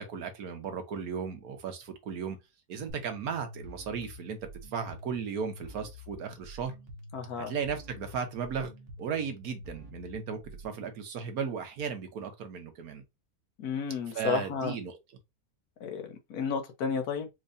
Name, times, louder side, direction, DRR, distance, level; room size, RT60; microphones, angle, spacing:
voice 1, 0.1-2.4 2.7-6.7 7.4-8.7 9.0-13.0 14.1-15.0, right 6 dB, 75° right, 1.4 m, -36 dB
sound 1, 2.9-10.9, equal, 55° right, 1.2 m, -48 dB
voice 2, 7.1-7.5 13.6-14.7 15.8-17.3, left 5 dB, 80° left, 1.5 m, -32 dB
4.5 x 2.7 x 2.6 m
omnidirectional pair, 1.6 m